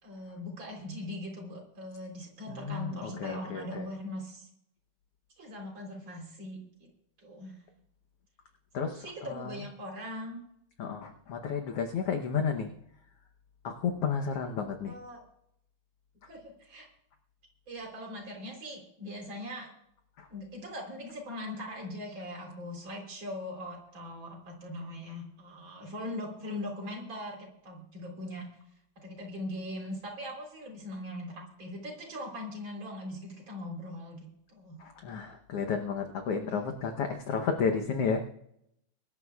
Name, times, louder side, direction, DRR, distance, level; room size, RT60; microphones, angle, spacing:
voice 1, 0.0-4.5 5.4-6.9 7.2-7.5 8.8-10.4 14.8-15.2 16.3-16.9 17.7-19.7 20.3-28.5 29.0-34.2 34.5-34.8 36.5-36.6, left 1 dB, 35° right, 0 dB, 4.3 m, -40 dB
voice 2, 2.5-3.8 8.7-9.6 10.8-12.7 13.6-14.9 20.2-20.3 34.8-38.2, left 6 dB, 65° left, 4 dB, 1.6 m, -32 dB
24.0 x 12.5 x 2.4 m, 0.74 s
omnidirectional pair, 3.7 m